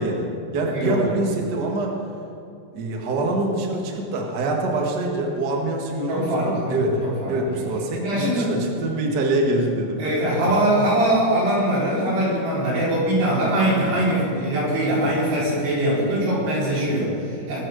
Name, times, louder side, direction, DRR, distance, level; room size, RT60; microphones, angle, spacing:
voice 1, 0.0-1.9 2.7-7.0 7.3-10.1, right 2 dB, 85° right, 0 dB, 0.9 m, -25 dB
voice 2, 0.6-1.1 6.1-7.6 8.0-8.5 10.0-17.6, right 1 dB, 65° right, -8 dB, 6.7 m, -22 dB
22.0 x 7.5 x 6.5 m, 2.4 s
omnidirectional pair, 5.1 m